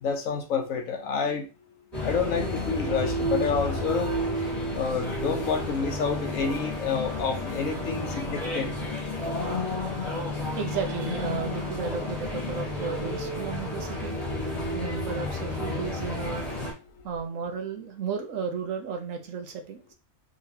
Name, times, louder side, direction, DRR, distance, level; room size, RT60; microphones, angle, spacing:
voice 1, 0.0-1.5 2.0-4.1 4.7-8.7, left 5 dB, 70° left, 3 dB, 1.2 m, -28 dB
sound 1, 1.9-16.7, left 1 dB, 25° left, 1.8 m, -31 dB
voice 2, 10.6-14.2 14.7-16.6 17.0-19.9, right 6 dB, 70° right, 5 dB, 1.1 m, -34 dB
3.8 x 3.0 x 2.7 m, 0.29 s
omnidirectional pair, 1.5 m